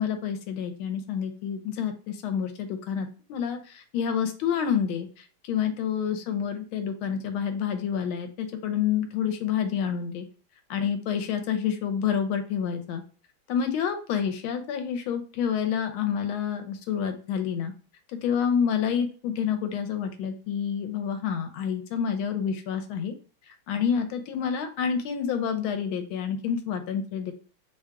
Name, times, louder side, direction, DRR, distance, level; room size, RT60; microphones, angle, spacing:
voice 1, 0.0-10.2 10.7-13.0 13.5-17.7 18.2-23.1 23.7-27.3, left 7 dB, 80° left, 7 dB, 1.4 m, -28 dB
3.3 x 2.3 x 3.5 m, 0.37 s
omnidirectional pair, 2.2 m